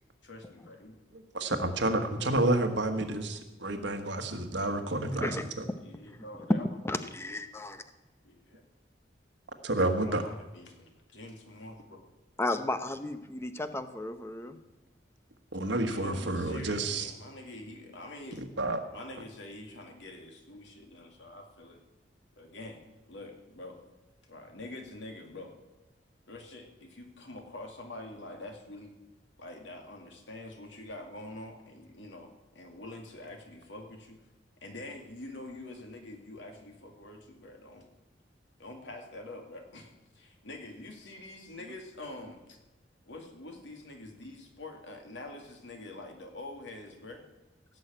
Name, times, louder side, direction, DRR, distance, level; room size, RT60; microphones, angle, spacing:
voice 1, 0.2-1.0 4.1-4.2 5.8-6.8 8.2-8.6 10.0-12.1 15.7-18.4 18.9-21.8 22.3-23.8 24.3-25.5 26.3-29.0 29.4-34.2 34.6-37.9 38.6-42.6 43.1-47.3, left 2 dB, 90° left, 3 dB, 2.4 m, -46 dB
voice 2, 1.3-5.6 9.6-10.2 15.5-17.1 18.6-18.8, right 2 dB, 80° right, 6 dB, 1.5 m, -29 dB
voice 3, 5.0-5.8 6.5-6.6 6.8-7.8 12.4-14.6, left 1 dB, 15° left, 10 dB, 0.8 m, -33 dB
17.0 x 6.5 x 8.8 m, 1.0 s
head